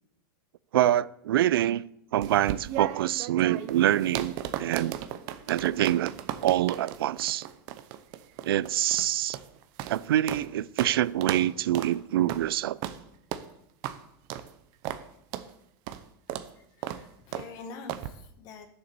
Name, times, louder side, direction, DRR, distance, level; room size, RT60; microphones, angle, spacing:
voice 1, 0.7-1.8 2.1-4.3 4.6-4.9 5.5-6.1 6.4-7.5 8.4-9.4 9.9-12.8, right 13 dB, 90° right, 0.5 m, -25 dB
sound 1, 2.2-10.5 10.8-10.9 11.2-11.5 11.7-11.9 12.3-12.5 12.8-13.0 13.3-13.5 13.8-14.0 14.3-14.5 14.8-15.0 15.3-15.5 15.9-16.0 16.3-16.5 16.8-17.0 17.3-17.5 17.9-18.1, right 11 dB, 30° right, 0.7 m, -35 dB
voice 2, 16.6-18.7, left 4 dB, 30° left, 1.4 m, -46 dB
11.0 x 6.8 x 6.9 m
supercardioid pair, 175°, 12 cm